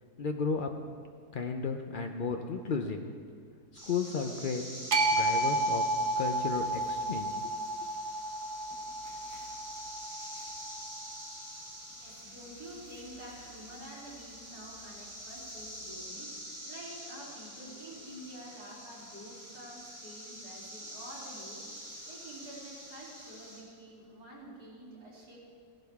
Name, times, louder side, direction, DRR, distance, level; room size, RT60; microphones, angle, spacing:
voice 1, 0.2-0.7 1.3-3.0 3.9-4.6 5.1-5.8 6.2-7.6, left 5 dB, 90° left, 4 dB, 0.4 m, -33 dB
sound 1, 3.7-23.6, equal, 10° right, 4.0 m, -46 dB
sound 2, 4.9-11.1, right 2 dB, 50° right, 1.2 m, -32 dB
voice 2, 12.0-25.4, right 1 dB, 70° right, -6 dB, 3.6 m, -48 dB
17.0 x 11.5 x 3.5 m, 2.1 s
omnidirectional pair, 1.8 m